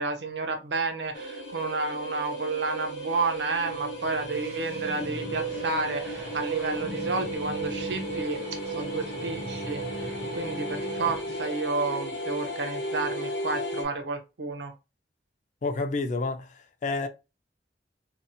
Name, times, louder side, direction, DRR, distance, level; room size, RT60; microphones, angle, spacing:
voice 1, 0.0-14.7, right 3 dB, 85° right, 0.5 m, -31 dB
sound 1, 1.1-13.8, right 1 dB, 80° left, 0.8 m, -35 dB
sound 2, 3.7-11.5, right 1 dB, 35° right, 0.4 m, -40 dB
voice 2, 15.6-17.1, left 3 dB, 45° left, 0.3 m, -29 dB
2.7 x 2.0 x 2.5 m
head